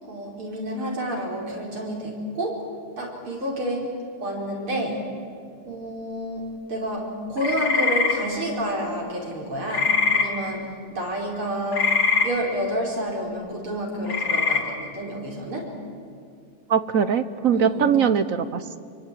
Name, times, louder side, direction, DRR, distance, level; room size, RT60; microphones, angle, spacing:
voice 1, 0.0-2.6 3.0-3.9 4.2-5.0 5.7-11.9 12.2-15.7 17.5-17.9, equal, 80° right, -1 dB, 5.9 m, -29 dB
sound 1, 7.4-8.1 9.7-10.3 11.7-12.3 14.1-14.6, left 4 dB, 70° left, 4.0 m, -21 dB
voice 2, 16.7-18.8, right 7 dB, 55° right, 12 dB, 0.9 m, -21 dB
27.0 x 24.0 x 9.2 m, 2.3 s
omnidirectional pair, 2.3 m